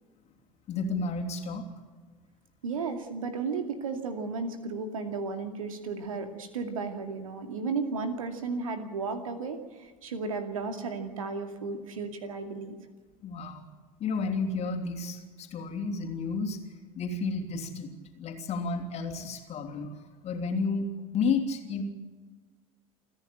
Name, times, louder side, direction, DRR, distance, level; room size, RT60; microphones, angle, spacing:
voice 1, 0.7-1.7 13.2-13.6 14.0-16.6 17.0-20.9 21.1-21.8, left 4 dB, 35° left, 4 dB, 3.2 m, -31 dB
voice 2, 2.6-12.8, right 4 dB, 70° right, 7 dB, 2.3 m, -34 dB
29.0 x 10.5 x 8.8 m, 1.4 s
figure-of-eight pair, 75°, 18 cm